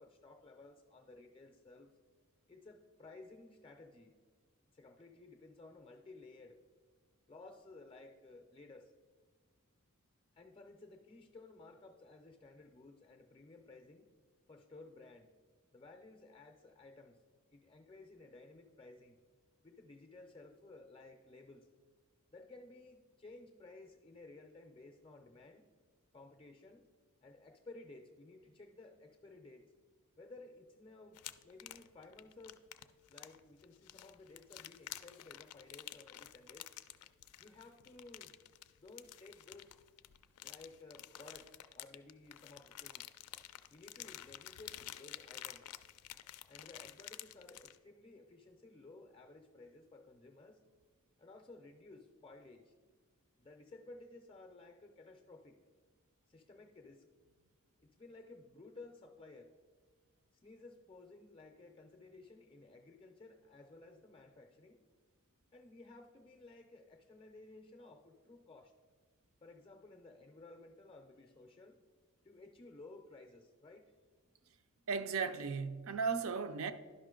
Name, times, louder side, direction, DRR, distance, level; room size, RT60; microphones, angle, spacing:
voice 1, 0.0-1.9 2.5-4.2 4.7-6.6 7.3-8.9 10.3-14.1 14.5-15.3 15.7-17.2 17.5-19.2 19.6-21.7 22.3-25.7 26.1-26.9 27.2-29.7 30.2-32.6 33.1-36.7 37.4-38.3 38.8-39.8 40.4-43.1 43.7-45.7 46.5-50.6 51.2-52.7 53.4-55.6 56.3-57.1 57.8-59.6 60.3-64.8 65.5-68.7 69.4-71.8 72.2-73.9, left 2 dB, 25° left, 0.4 m, -56 dB
sound 1, 31.1-47.8, left 13 dB, 85° left, 0.4 m, -51 dB
voice 2, 74.9-76.7, right 5 dB, 65° right, 0.5 m, -36 dB
11.0 x 5.6 x 3.7 m
head